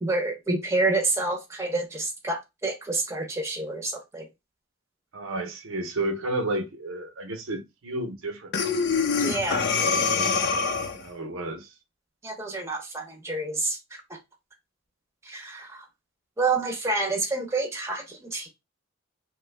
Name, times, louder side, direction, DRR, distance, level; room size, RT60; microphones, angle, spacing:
voice 1, 0.0-4.2 9.2-9.6 10.4-10.6 12.2-13.8 15.2-15.9 16.4-18.5, right 3 dB, 15° right, 0.7 m, -28 dB
voice 2, 5.1-8.5 10.9-11.7, right 1 dB, 85° right, 0.8 m, -31 dB
Breathing, 8.5-11.1, left 5 dB, 55° left, 0.5 m, -24 dB
3.0 x 2.2 x 3.3 m
head